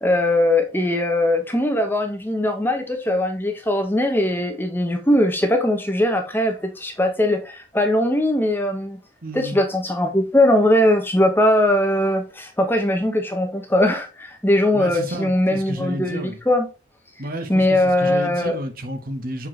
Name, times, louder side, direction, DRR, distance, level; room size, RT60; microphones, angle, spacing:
voice 1, 0.0-9.0 9.3-16.7 17.5-18.6, left 1 dB, 10° left, 0.9 m, -20 dB
voice 2, 9.2-9.6 14.7-16.4 17.2-19.5, equal, 45° right, 1.2 m, -31 dB
7.1 x 4.5 x 3.2 m
head